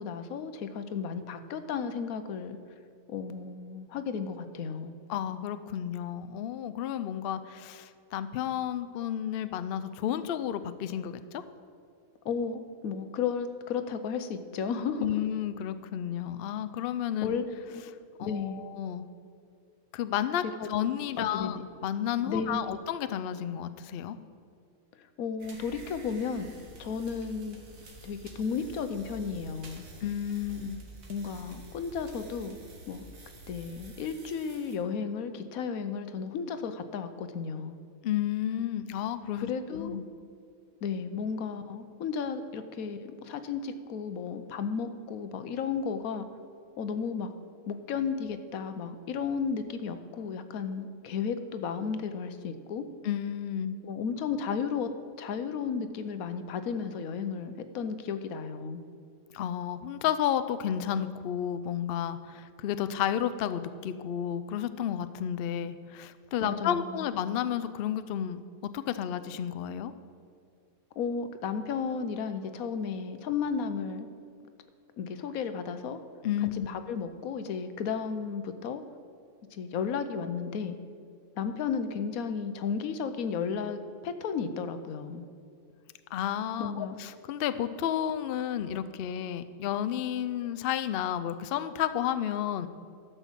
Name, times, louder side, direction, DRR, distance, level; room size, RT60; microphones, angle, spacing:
voice 1, 0.0-2.6 3.1-4.9 12.2-15.1 17.2-17.8 18.2-18.6 20.6-20.7 21.2-21.7 22.3-22.8 25.2-26.5 26.8-27.6 28.0-29.8 31.1-32.6 32.9-33.1 33.5-37.8 39.4-40.0 40.8-46.3 46.8-47.3 47.7-52.8 53.8-54.9 55.2-58.8 66.4-67.1 71.0-74.1 75.0-76.0 76.7-78.8 79.5-80.8 81.4-83.8 84.0-85.2 86.6-87.0, left 6 dB, 85° left, 10 dB, 1.2 m, -33 dB
voice 2, 5.1-11.4 15.0-17.4 18.2-19.1 19.9-24.2 30.0-30.8 38.0-40.0 53.0-53.8 59.3-68.4 68.7-69.9 76.2-76.7 86.1-92.7, left 10 dB, 65° left, 11 dB, 0.6 m, -32 dB
sound 1, 25.4-34.8, right 3 dB, 75° right, 1.9 m, -49 dB
12.5 x 5.6 x 7.3 m, 2.4 s
omnidirectional pair, 1.4 m